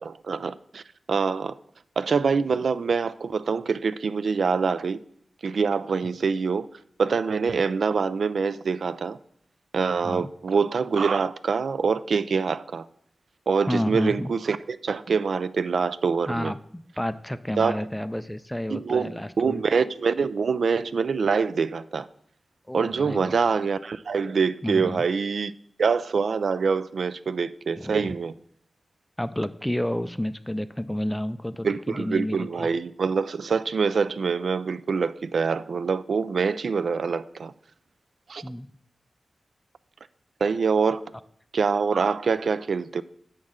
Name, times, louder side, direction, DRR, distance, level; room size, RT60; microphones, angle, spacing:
voice 1, 0.0-1.6 2.0-5.0 5.4-6.7 7.0-9.2 9.7-12.9 13.5-16.5 17.6-17.8 18.7-22.1 22.7-25.5 25.8-28.3 31.6-37.5 38.3-38.4 40.4-41.0 41.5-43.0, right 5 dB, 70° right, 0.3 m, -25 dB
voice 2, 13.7-14.3 16.3-19.6 22.7-23.4 24.6-25.0 27.7-28.2 29.2-32.7 38.4-38.7, left 1 dB, 5° left, 0.4 m, -30 dB
10.5 x 7.4 x 3.7 m
wide cardioid pair, 130°, 0 cm